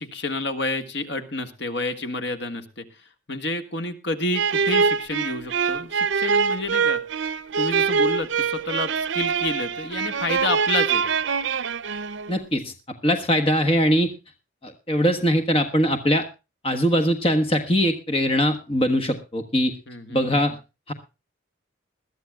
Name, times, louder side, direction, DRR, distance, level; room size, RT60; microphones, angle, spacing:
voice 1, 0.0-7.0 7.6-11.0 19.9-20.4, left 2 dB, 60° left, 8 dB, 1.7 m, -29 dB
sound 1, 4.3-12.4, right 5 dB, 75° right, 0.6 m, -24 dB
voice 2, 12.3-14.1 14.6-16.3 16.6-19.7 20.1-20.5 20.9-21.0, equal, 30° left, 7 dB, 1.4 m, -21 dB
21.5 x 13.5 x 2.3 m, 0.29 s
head